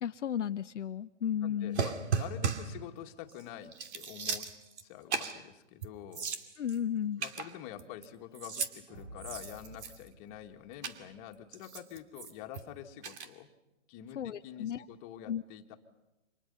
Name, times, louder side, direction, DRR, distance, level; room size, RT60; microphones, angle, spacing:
voice 1, 0.0-1.8 6.6-7.2 14.1-14.8 15.3-15.4, left 9 dB, 75° left, 9 dB, 0.8 m, -34 dB
voice 2, 1.4-4.5 4.8-6.3 7.2-13.5 13.9-15.7, left 11 dB, 30° left, 4 dB, 2.1 m, -47 dB
sound 1, 1.7-2.8 3.3-3.4 3.7-4.8 5.1-5.4 5.8-5.9 6.1-6.8 7.2-8.1 8.3-8.7 9.2-10.1 10.8-11.0 11.5-12.6 13.0-13.3, right 6 dB, 65° right, 2.6 m, -36 dB
sound 2, 8.9-11.4, right 1 dB, 85° right, 5.1 m, -52 dB
29.0 x 26.0 x 5.7 m, 0.97 s
hypercardioid pair, 140°, 37 cm